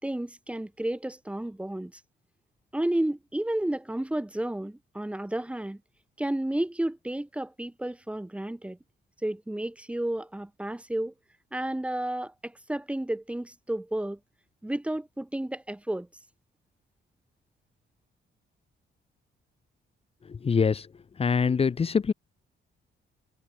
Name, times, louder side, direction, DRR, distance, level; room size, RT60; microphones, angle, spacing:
voice 1, 0.0-1.9 2.7-5.8 6.2-8.8 9.2-11.1 11.5-14.2 14.6-16.1, right 1 dB, 5° right, 3.0 m, -31 dB
voice 2, 20.3-20.9 21.2-22.1, left 5 dB, 30° left, 1.9 m, -24 dB
wide cardioid pair, 175°, 20 cm